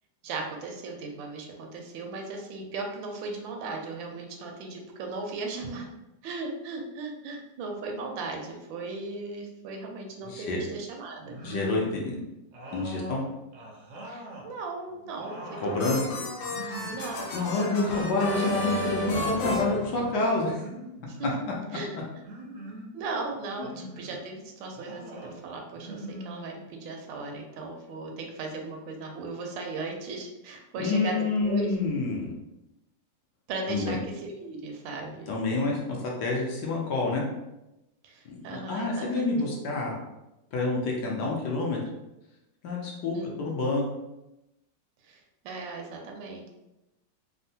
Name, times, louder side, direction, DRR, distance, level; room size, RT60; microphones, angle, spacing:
voice 1, 0.2-5.9 6.2-11.4 14.0-16.2 16.9-17.7 21.1-21.3 21.7-22.0 22.9-31.7 33.5-35.3 38.0-39.1 39.4-39.5 43.1-43.3 45.0-46.5, right 3 dB, 85° right, 2 dB, 1.3 m, -37 dB
voice 2, 10.2-10.6 11.4-12.2 12.7-13.2 15.6-16.0 16.6-16.7 17.3-20.6 30.8-32.3 33.7-33.9 35.3-37.2 38.3-40.0 40.5-41.8 42.6-43.8, left 3 dB, 70° left, -2 dB, 1.2 m, -28 dB
sound 1, 11.3-12.1 12.5-14.5 14.9-15.9 16.4-17.1 17.4-18.1 19.0-19.7 20.6-21.5 22.2-22.9 23.6-24.2 24.7-25.4 25.7-26.9, right 1 dB, 70° right, 0.7 m, -43 dB
sound 2, 15.2-20.6, left 1 dB, 90° left, 1.4 m, -33 dB
3.5 x 2.1 x 2.7 m, 0.94 s
omnidirectional pair, 2.0 m